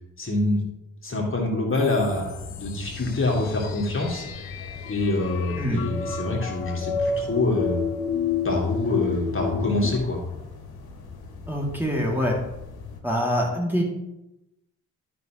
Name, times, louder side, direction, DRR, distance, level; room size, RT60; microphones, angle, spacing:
voice 1, 0.2-0.6 1.0-4.5 4.9-7.8 8.4-10.2, left 2 dB, 30° left, -1 dB, 2.3 m, -25 dB
sound 1, 1.7-9.9, left 6 dB, 80° left, 0.6 m, -31 dB
sound 2, 2.0-13.0, left 5 dB, 60° left, 1.4 m, -40 dB
voice 2, 11.5-12.4 13.0-13.8, equal, 5° right, -2 dB, 2.1 m, -24 dB
12.0 x 5.9 x 3.0 m, 0.92 s
figure-of-eight pair, 40°, 41 cm